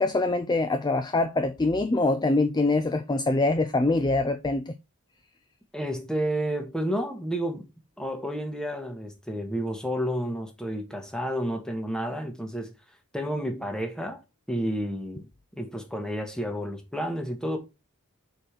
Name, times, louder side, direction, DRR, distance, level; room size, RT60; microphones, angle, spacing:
voice 1, 0.0-4.7, left 2 dB, 20° left, 0.4 m, -24 dB
voice 2, 5.7-7.7 8.0-12.7 13.1-14.2 14.5-15.3 15.6-17.6, equal, 5° left, 1.2 m, -30 dB
4.9 x 4.3 x 5.8 m
head